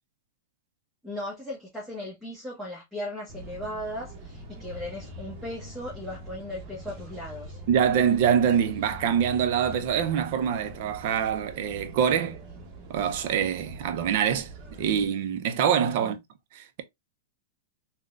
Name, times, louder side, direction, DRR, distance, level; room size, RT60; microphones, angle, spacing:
voice 1, 1.0-7.6 16.0-16.2, left 1 dB, 5° right, 1.0 m, -37 dB
sound 1, 3.3-15.1, equal, 30° right, 0.9 m, -43 dB
voice 2, 7.7-12.4 12.9-14.5 14.8-16.2 16.5-16.8, right 8 dB, 55° right, 0.6 m, -25 dB
3.7 x 2.2 x 2.4 m
hypercardioid pair, 145°, 0 cm